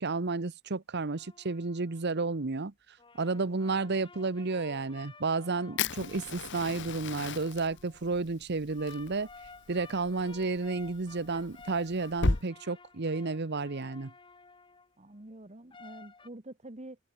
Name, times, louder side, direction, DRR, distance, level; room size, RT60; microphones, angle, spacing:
voice 1, 0.0-2.7 3.1-9.3 9.7-14.1, right 3 dB, 50° right, 0.9 m, -32 dB
sound 1, 1.2-2.4 3.0-8.1 8.7-14.9 15.7-16.3, left 4 dB, 25° left, 1.9 m, -54 dB
Fire, 5.8-12.4, left 3 dB, 60° left, 1.5 m, -36 dB
voice 2, 15.0-17.0, right 1 dB, 30° right, 1.9 m, -47 dB
head